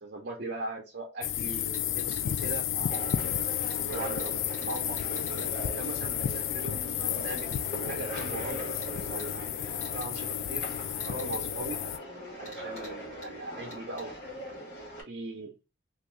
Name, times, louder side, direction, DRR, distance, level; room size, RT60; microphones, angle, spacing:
voice 1, 0.0-2.9 3.9-5.2 5.8-9.5 9.9-10.6 11.0-11.8 12.4-14.5 15.0-15.5, right 2 dB, 50° right, -1 dB, 0.7 m, -40 dB
sound 1, 1.2-12.0, left 10 dB, 75° left, 0.3 m, -32 dB
sound 2, 1.7-2.5 2.9-3.2 3.7-5.5 7.4-7.6 8.2-8.3 8.8-8.9 9.2-9.3 9.8-10.1 11.0-11.4 12.5-12.9 13.2-13.3 13.7-14.1, right 1 dB, 35° left, 1.8 m, -49 dB
sound 3, 2.9-15.0, right 1 dB, 50° left, 1.7 m, -40 dB
3.4 x 2.5 x 3.0 m, 0.29 s
head